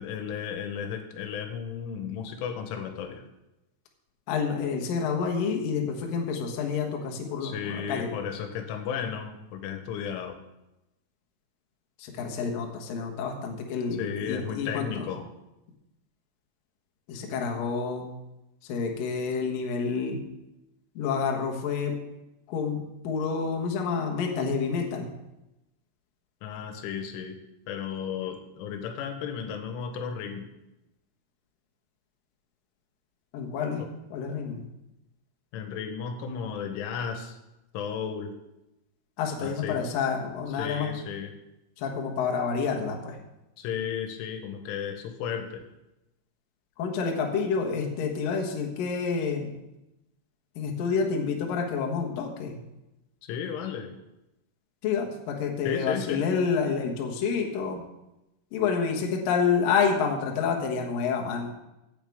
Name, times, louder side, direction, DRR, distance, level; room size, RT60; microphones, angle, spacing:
voice 1, 0.0-3.2 7.4-10.4 14.0-15.3 26.4-27.4 27.7-30.5 33.8-33.9 35.5-37.4 37.7-38.3 39.4-39.8 40.6-41.3 43.6-45.6 53.2-53.9 55.7-56.3, left 7 dB, 85° left, 6 dB, 3.5 m, -34 dB
voice 2, 4.3-8.2 12.0-15.1 17.1-18.1 18.6-20.2 21.0-21.9 22.5-25.1 33.3-33.9 34.1-34.6 39.2-40.9 41.8-43.2 46.8-49.6 50.6-52.6 54.8-57.8 58.5-61.5, left 5 dB, 65° left, 1 dB, 2.5 m, -28 dB
15.5 x 8.4 x 3.5 m, 0.93 s
omnidirectional pair, 5.5 m